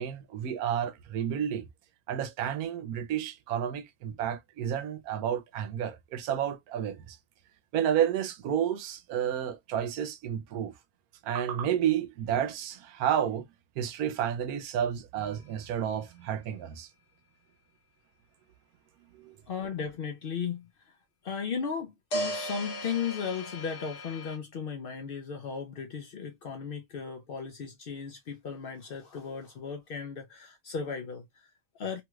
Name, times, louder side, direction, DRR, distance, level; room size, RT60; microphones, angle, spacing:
voice 1, 0.0-1.7 2.1-7.2 7.7-10.7 11.2-13.4 13.8-16.9 19.1-19.4, right 9 dB, 80° right, 1.1 m, -31 dB
sound 1, 15.2-15.3 22.1-24.4, right 1 dB, 50° left, 1.2 m, -36 dB
voice 2, 19.5-21.0 21.2-32.0, left 6 dB, 80° left, 0.5 m, -36 dB
3.0 x 2.9 x 2.2 m
omnidirectional pair, 1.6 m